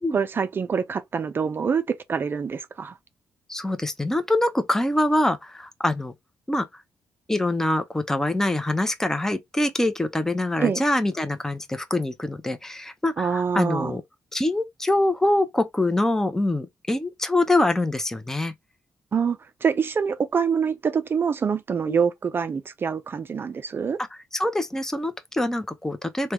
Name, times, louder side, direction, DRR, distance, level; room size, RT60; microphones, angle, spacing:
voice 1, 0.1-2.9 10.6-10.8 13.2-13.9 19.1-24.0, right 6 dB, 40° right, 0.4 m, -25 dB
voice 2, 3.5-6.1 6.5-6.7 7.3-14.0 14.3-18.5 21.9-22.0 24.0-26.3, left 1 dB, 10° left, 0.5 m, -24 dB
3.4 x 2.2 x 2.9 m
cardioid pair, 105°, 6 cm